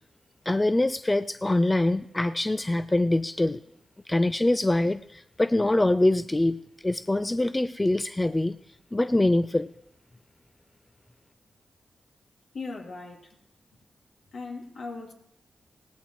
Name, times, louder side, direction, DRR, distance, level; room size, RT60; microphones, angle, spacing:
voice 1, 0.5-3.6 4.1-6.6 6.8-8.6 8.9-9.7, left 1 dB, 20° left, 11 dB, 0.5 m, -24 dB
voice 2, 12.5-13.4 14.3-15.1, left 3 dB, 75° left, 0 dB, 2.3 m, -38 dB
18.5 x 15.5 x 3.1 m, 0.77 s
cardioid pair, 55°, 0 cm